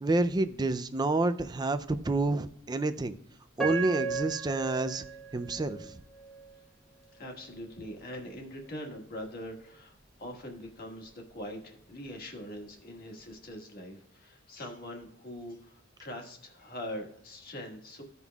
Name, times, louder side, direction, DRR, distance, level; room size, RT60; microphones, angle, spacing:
voice 1, 0.0-3.2 3.6-5.0 5.3-6.0, right 2 dB, 20° right, 11 dB, 0.4 m, -29 dB
Piano, 3.6-6.6 7.2-7.3 7.9-8.2, right 5 dB, ahead, 1.2 m, -36 dB
voice 2, 7.1-18.0, equal, 50° left, 2 dB, 1.6 m, -43 dB
15.5 x 5.4 x 2.3 m, 0.71 s
head